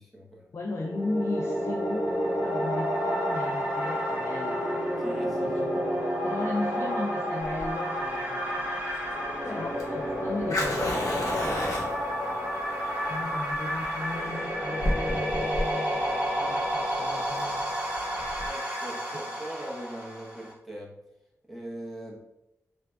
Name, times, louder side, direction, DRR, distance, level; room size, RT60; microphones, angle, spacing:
voice 1, 0.0-0.5 5.0-5.6 5.9-6.0 12.3-12.5 13.0-13.1 18.4-20.9 21.5-22.2, right 1 dB, ahead, -3 dB, 0.8 m, -41 dB
voice 2, 0.5-4.8 5.4-8.9 9.5-11.7 12.2-12.7 13.1-17.7 18.1-18.3, left 2 dB, 50° left, 0 dB, 0.4 m, -36 dB
sound 1, 0.6-20.5, equal, 25° right, 0.9 m, -30 dB
Fire, 7.4-18.5, left 1 dB, 70° left, 1.0 m, -34 dB
3.4 x 2.5 x 3.3 m, 0.86 s
wide cardioid pair, 100°, 6 cm